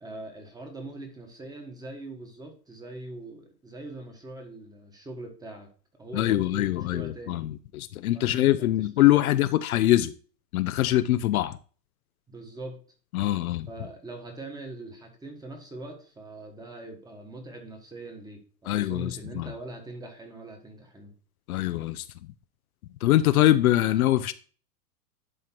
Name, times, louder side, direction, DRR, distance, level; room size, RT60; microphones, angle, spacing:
voice 1, 0.0-5.7 6.0-7.4 8.1-9.4 12.3-12.8 13.7-21.1, right 2 dB, 10° right, 4 dB, 1.3 m, -42 dB
voice 2, 6.1-10.1 10.5-11.6 13.1-13.7 18.7-19.5 21.5-22.1 23.0-24.3, left 14 dB, 60° left, 12 dB, 0.6 m, -23 dB
11.0 x 3.8 x 4.4 m, 0.40 s
hypercardioid pair, 135°, 48 cm